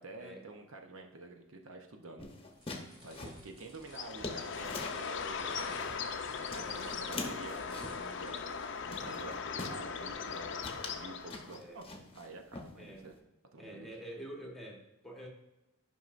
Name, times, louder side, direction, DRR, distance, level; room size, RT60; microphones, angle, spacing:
voice 1, 0.0-2.3 3.0-5.9 6.5-8.4 8.8-13.1 13.5-13.9, right 3 dB, 70° right, 4 dB, 0.8 m, -49 dB
sound 1, 2.2-5.1 5.5-6.2 6.5-8.1 8.5-8.7 8.9-9.8 10.2-10.4 10.6-12.3 12.5-13.1, left 2 dB, 25° left, 0.9 m, -44 dB
sound 2, 2.5-9.1, equal, 20° right, 1.8 m, -57 dB
Bird, 3.9-11.6, left 5 dB, 55° left, 0.5 m, -39 dB
voice 2, 6.5-7.3 11.5-11.8 12.8-13.1 13.6-15.3, right 1 dB, ahead, -1 dB, 1.2 m, -48 dB
11.0 x 5.4 x 2.5 m, 0.97 s
head